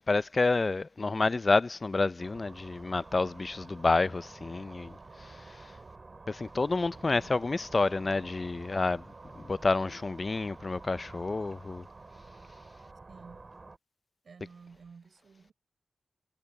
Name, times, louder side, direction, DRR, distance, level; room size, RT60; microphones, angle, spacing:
voice 1, 0.1-4.9 6.3-9.0 9.5-11.8, left 3 dB, 40° left, 0.5 m, -29 dB
sound 1, 2.2-13.8, right 3 dB, 40° right, 6.5 m, -50 dB
voice 2, 7.1-7.4 13.1-13.4 14.2-15.5, right 5 dB, 70° right, 6.2 m, -52 dB
cardioid pair, 70°, 0 cm